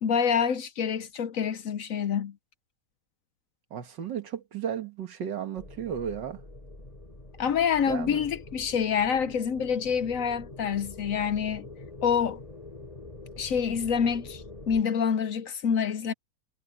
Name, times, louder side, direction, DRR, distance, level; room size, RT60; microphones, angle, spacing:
voice 1, 0.0-2.3 7.4-11.7 12.0-12.4 13.4-16.1, left 7 dB, 60° left, 1.0 m, -27 dB
voice 2, 3.7-6.4 7.9-8.3, right 8 dB, 90° right, 2.2 m, -34 dB
sound 1, 5.6-14.8, left 2 dB, 20° left, 3.7 m, -45 dB
omnidirectional pair, 1.9 m